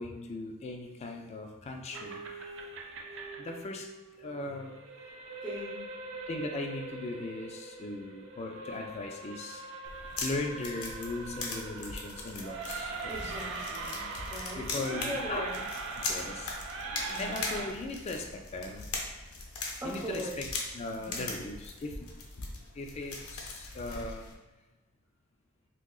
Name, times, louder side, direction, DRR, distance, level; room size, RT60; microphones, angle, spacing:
voice 1, 0.0-2.2 3.4-3.9 4.2-4.8 6.3-9.6 10.2-13.3 14.6-15.5 16.1-16.6 17.2-18.8 19.8-20.5 20.7-22.1 22.7-24.2, left 2 dB, 30° left, 3 dB, 0.3 m, -38 dB
sound 1, 1.9-17.7, right 3 dB, 60° right, 0.4 m, -41 dB
voice 2, 5.4-5.9 13.1-15.6 17.1-17.4 19.8-20.4 21.0-21.4, equal, 20° right, -5 dB, 0.9 m, -40 dB
sound 2, 9.8-24.3, left 3 dB, 85° left, 0.6 m, -40 dB
3.7 x 2.8 x 2.3 m, 1.1 s
head